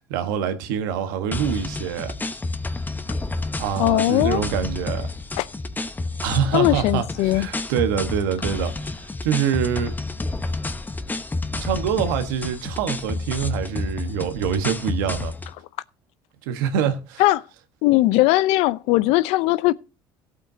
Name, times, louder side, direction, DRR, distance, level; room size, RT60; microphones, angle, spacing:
voice 1, 0.0-2.1 3.6-5.1 6.2-9.9 11.5-15.3 16.5-17.2, right 8 dB, 80° right, 1.3 m, -25 dB
sound 1, 1.3-15.5, left 2 dB, 15° left, 1.0 m, -29 dB
voice 2, 3.8-4.4 5.4-5.5 6.5-7.5 17.2-17.4 17.8-19.7, left 18 dB, 70° left, 0.6 m, -19 dB
18.0 x 8.2 x 2.7 m
hypercardioid pair, 65°, 11 cm